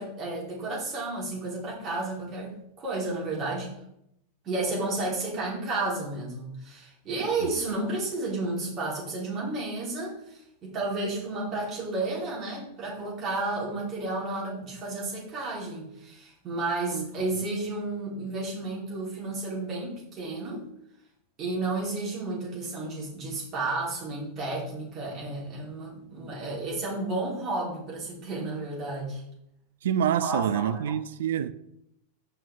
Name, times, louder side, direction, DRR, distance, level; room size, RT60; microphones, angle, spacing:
voice 1, 0.0-3.7 4.4-20.6 21.4-29.2 30.2-30.8, right 2 dB, 30° right, 3.0 m, -32 dB
voice 2, 29.8-31.5, right 9 dB, 60° right, 0.4 m, -27 dB
7.6 x 5.5 x 3.4 m
figure-of-eight pair, 90°, 0 cm